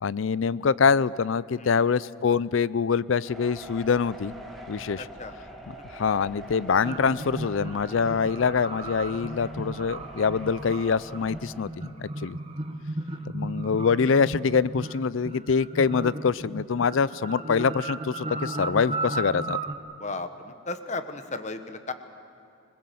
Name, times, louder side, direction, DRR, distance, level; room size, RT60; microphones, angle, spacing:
voice 1, 0.0-4.3 4.7-5.1 5.7-12.4 13.3-19.6, left 5 dB, 70° left, 20 dB, 0.5 m, -25 dB
sound 1, 3.3-11.6, right 1 dB, ahead, 2.2 m, -44 dB
voice 2, 5.0-5.3 20.0-21.9, left 3 dB, 35° left, 9 dB, 1.1 m, -35 dB
sound 2, 6.8-19.7, right 2 dB, 30° right, 1.2 m, -35 dB
26.5 x 20.5 x 7.8 m, 2.6 s
head